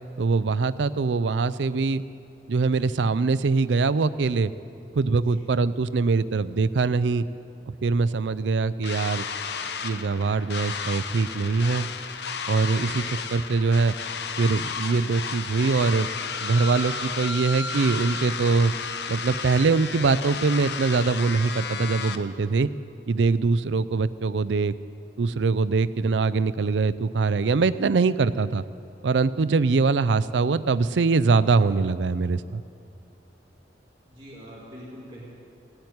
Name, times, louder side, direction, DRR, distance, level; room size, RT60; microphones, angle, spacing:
voice 1, 0.2-2.0 2.5-4.5 4.9-7.3 7.7-9.3 9.8-11.9 12.5-13.9 14.4-16.1 16.4-18.7 19.1-22.7 23.1-24.7 25.2-28.6 29.0-32.6, right 4 dB, 85° right, 16 dB, 0.5 m, -23 dB
sound 1, 8.8-22.2, left 5 dB, 65° left, 0.8 m, -33 dB
voice 2, 34.1-35.3, equal, 30° right, -6 dB, 2.2 m, -43 dB
17.0 x 8.9 x 9.6 m, 2.6 s
head